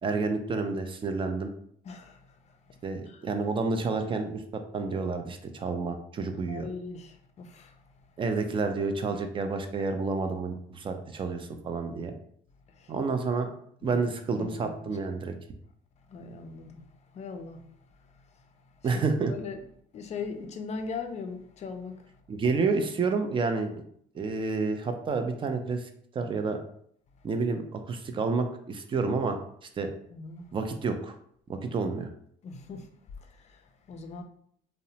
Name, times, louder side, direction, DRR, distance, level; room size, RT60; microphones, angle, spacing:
voice 1, 0.0-1.5 2.8-4.4 4.7-6.7 8.2-12.1 12.9-13.5 13.8-15.3 18.8-19.3 22.3-23.7 24.1-26.6 27.2-29.4 29.8-29.9 30.5-31.1 31.5-32.1, right 4 dB, 30° right, 0.4 m, -29 dB
voice 2, 1.8-2.6 3.1-3.2 6.5-7.8 12.7-12.9 13.8-14.0 14.4-15.0 16.1-17.7 19.4-19.6 19.9-22.1 30.1-30.5 32.4-32.9 33.2-34.2, left 4 dB, 40° left, 0.4 m, -40 dB
2.8 x 2.0 x 2.7 m
cardioid pair, 110°, 17 cm